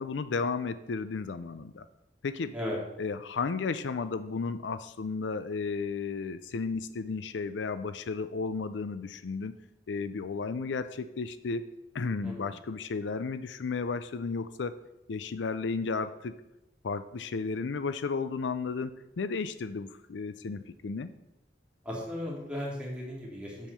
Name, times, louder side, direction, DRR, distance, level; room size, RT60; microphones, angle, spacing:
voice 1, 0.0-1.9 2.2-2.5 3.0-9.5 9.9-11.7 11.9-14.8 15.1-16.4 16.8-21.1, left 4 dB, 80° left, 12 dB, 0.5 m, -33 dB
voice 2, 21.8-23.7, left 1 dB, 5° right, -4 dB, 2.6 m, -36 dB
7.4 x 5.5 x 6.8 m, 0.90 s
head